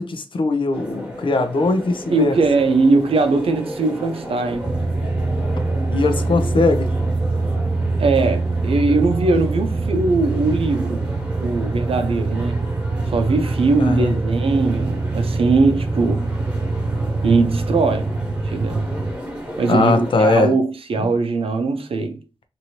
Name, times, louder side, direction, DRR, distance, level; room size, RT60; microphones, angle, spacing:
voice 1, 0.0-2.3 5.9-6.9 13.8-14.1 19.7-20.5 21.0-21.1, left 3 dB, 65° left, 0.5 m, -20 dB
sound 1, 0.7-20.4, equal, 15° right, 1.2 m, -34 dB
voice 2, 2.1-4.7 8.0-11.0 11.4-12.7 13.1-16.3 17.2-18.1 18.4-18.9 19.6-22.2, right 3 dB, 85° right, 0.5 m, -20 dB
sound 2, 4.6-19.1, right 3 dB, 40° right, 0.5 m, -24 dB
2.7 x 2.6 x 3.0 m
wide cardioid pair, 95°, 9 cm